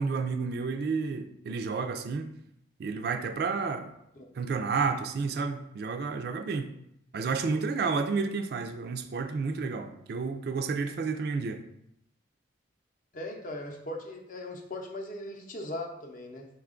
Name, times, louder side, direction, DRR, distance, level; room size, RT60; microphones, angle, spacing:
voice 1, 0.0-2.3 2.8-3.9 4.4-6.7 7.1-11.6, right 4 dB, 55° right, 8 dB, 0.3 m, -31 dB
voice 2, 13.1-16.5, left 1 dB, 45° left, 1 dB, 0.6 m, -39 dB
4.8 x 2.3 x 3.7 m, 0.78 s
head